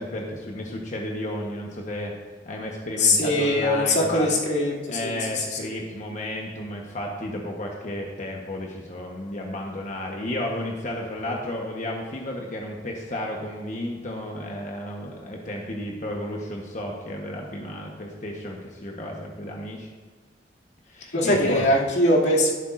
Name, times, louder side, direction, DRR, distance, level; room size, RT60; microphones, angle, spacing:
voice 1, 0.0-2.1 2.5-4.3 4.9-19.9 20.9-21.6, left 1 dB, 45° left, -1 dB, 1.1 m, -32 dB
voice 2, 3.0-5.7 21.1-22.5, left 1 dB, 90° left, -4 dB, 2.5 m, -22 dB
12.5 x 11.5 x 2.6 m, 1.5 s
head